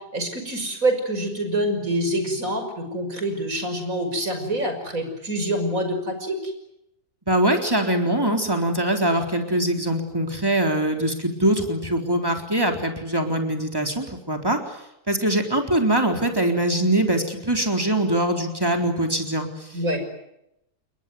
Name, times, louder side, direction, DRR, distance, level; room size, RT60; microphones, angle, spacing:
voice 1, 0.1-6.5 19.7-20.0, right 1 dB, 60° right, 7 dB, 6.5 m, -26 dB
voice 2, 7.3-14.6 15.1-19.7, right 1 dB, 15° right, 3 dB, 3.9 m, -23 dB
29.0 x 22.0 x 9.5 m, 0.84 s
omnidirectional pair, 1.6 m